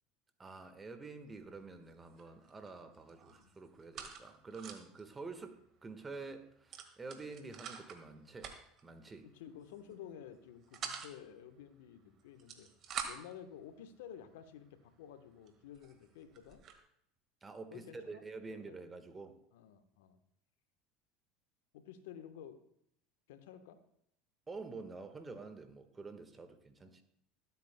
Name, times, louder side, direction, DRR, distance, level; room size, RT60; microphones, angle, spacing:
voice 1, 0.4-8.5 8.8-9.3 17.4-19.4 24.5-27.0, right 3 dB, 20° right, 1.4 m, -48 dB
sound 1, 1.3-1.6 1.8-2.7 2.9-5.0 5.4-5.5 5.7-5.9 6.7-8.0 8.4-8.8 9.6-9.9 10.3-11.1 12.2-13.4 14.1-14.2 14.8-14.9 15.5-15.6 15.7-16.8, right 7 dB, 45° right, 1.7 m, -46 dB
voice 2, 9.3-12.7 13.1-16.6 17.7-18.2 18.5-18.8 19.1-19.2 19.5-20.2 21.7-22.6 23.3-23.8 26.8-27.0, left 9 dB, 75° left, 1.1 m, -52 dB
23.5 x 8.3 x 2.2 m
hypercardioid pair, 75°, 0 cm